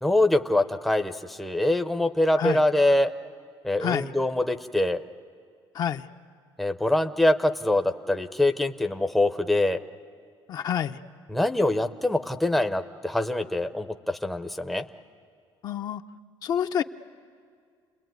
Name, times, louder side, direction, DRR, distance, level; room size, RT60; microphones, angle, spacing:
voice 1, 0.0-3.1 3.6-5.0 6.6-9.8 11.3-14.8, left 1 dB, ahead, 7 dB, 0.7 m, -24 dB
voice 2, 10.5-11.0 15.6-16.0 16.4-16.8, left 9 dB, 45° left, 7 dB, 0.7 m, -27 dB
30.0 x 21.5 x 9.3 m, 2.2 s
cardioid pair, 155°, 9 cm